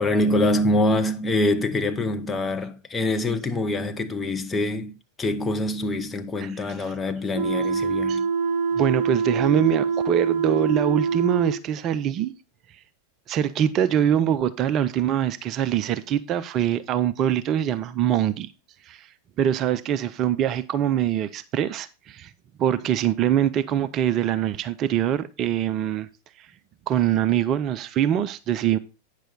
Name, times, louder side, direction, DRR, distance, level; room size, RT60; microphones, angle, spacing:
voice 1, 0.0-8.2, left 1 dB, 15° left, 0.8 m, -25 dB
voice 2, 6.4-6.9 8.1-8.2 8.8-12.3 13.3-18.5 18.9-19.1 19.4-22.3 22.6-26.1 26.4-26.5 26.9-28.8, right 10 dB, 35° right, 0.5 m, -23 dB
sound 1, 7.3-11.6, right 5 dB, 65° right, 0.8 m, -24 dB
9.0 x 6.5 x 3.9 m
figure-of-eight pair, 90°, 0 cm